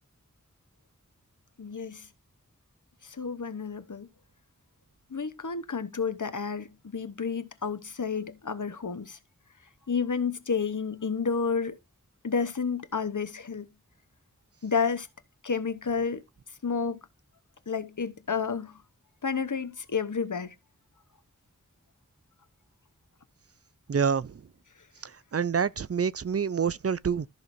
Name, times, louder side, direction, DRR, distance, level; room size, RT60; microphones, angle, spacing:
voice 1, 1.6-2.1 3.0-4.1 5.1-9.2 9.9-11.8 12.2-13.7 14.6-15.1 15.4-16.2 16.6-17.0 17.7-18.8 19.2-20.5, left 5 dB, 70° left, 1.0 m, -30 dB
voice 2, 23.9-24.4 25.3-27.3, right 6 dB, 50° right, 0.5 m, -27 dB
13.5 x 5.8 x 2.7 m
wide cardioid pair, 40°, 32 cm